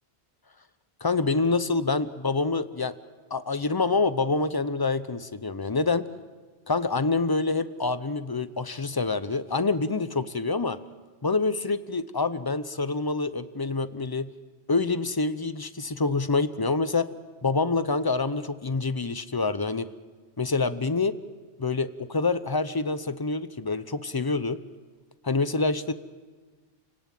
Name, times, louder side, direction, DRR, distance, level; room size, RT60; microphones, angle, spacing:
voice 1, 1.0-2.9 3.3-6.1 6.7-10.8 11.2-14.3 14.7-17.1 17.4-19.9 20.4-21.1 21.6-24.6 25.2-25.9, left 3 dB, 25° left, 13 dB, 0.7 m, -26 dB
27.5 x 18.0 x 7.7 m, 1.4 s
omnidirectional pair, 1.1 m